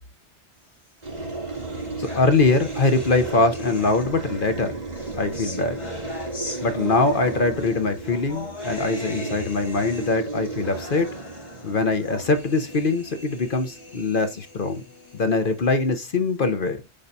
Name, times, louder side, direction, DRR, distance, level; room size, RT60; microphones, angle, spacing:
sound 1, 1.0-4.4 4.9-16.4, left 2 dB, 70° left, 4.0 m, -41 dB
sound 2, 1.0-13.9, right 3 dB, 35° right, 3.2 m, -34 dB
voice 1, 2.0-4.8 5.1-5.8 6.6-11.1 11.6-14.8 15.1-16.8, left 3 dB, 50° left, 1.1 m, -23 dB
8.8 x 4.7 x 2.7 m
omnidirectional pair, 1.2 m